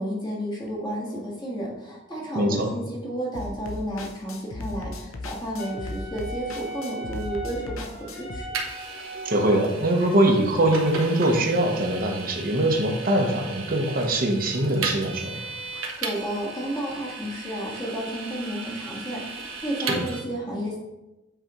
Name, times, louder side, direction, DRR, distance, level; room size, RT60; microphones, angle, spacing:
voice 1, 0.0-8.5 15.7-20.8, equal, 20° left, -5 dB, 1.6 m, -32 dB
voice 2, 2.3-2.7 9.2-15.4 19.9-20.1, right 1 dB, 45° right, 2 dB, 1.0 m, -22 dB
sound 1, 3.3-8.4, left 2 dB, 80° left, 0.8 m, -37 dB
Wind instrument woodwind instrument, 5.6-9.8, right 2 dB, 55° left, 2.4 m, -39 dB
Vehicle, 8.5-20.2, right 4 dB, 80° right, 1.1 m, -36 dB
7.9 x 5.0 x 3.1 m, 1.0 s
head